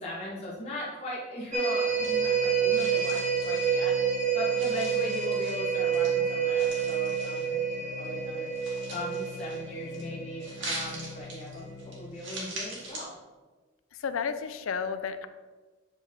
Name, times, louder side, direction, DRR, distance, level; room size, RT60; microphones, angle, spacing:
voice 1, 0.0-8.5 8.9-13.1, left 1 dB, 30° left, -7 dB, 1.1 m, -39 dB
sound 1, 1.5-11.3 11.7-11.8, right 7 dB, 35° right, 0.9 m, -28 dB
sound 2, 1.6-2.4 2.7-4.2 4.5-6.1 6.5-7.7 8.0-10.0 10.4-13.0, right 2 dB, 65° right, 2.1 m, -42 dB
Organ, 1.7-12.4, left 6 dB, ahead, 0.6 m, -46 dB
voice 2, 13.9-15.3, left 6 dB, 85° left, 10 dB, 0.4 m, -32 dB
7.9 x 4.5 x 3.6 m, 1.3 s
head